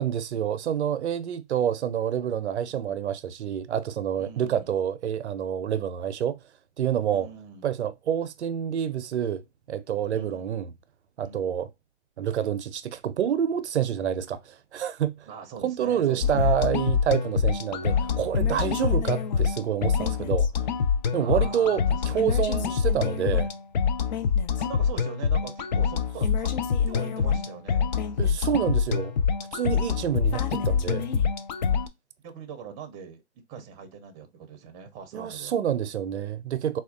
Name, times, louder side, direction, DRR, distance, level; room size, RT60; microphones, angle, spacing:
voice 1, 0.0-6.4 6.8-7.3 7.6-9.4 9.7-10.7 11.2-11.7 12.2-15.3 15.6-20.5 21.1-23.5 28.2-29.1 29.5-31.1 35.1-36.8, right 9 dB, 75° right, 0.6 m, -28 dB
voice 2, 4.2-4.7 7.1-7.7 10.1-10.5 11.2-11.6 15.3-16.6 17.8-18.2 18.7-18.9 21.2-22.3 24.6-26.5 26.9-27.9 32.2-33.2 33.5-35.5, right 7 dB, 20° right, 0.6 m, -42 dB
sound 1, 16.2-31.9, left 6 dB, 40° left, 0.4 m, -25 dB
4.2 x 2.3 x 2.4 m
hypercardioid pair, 135°, 34 cm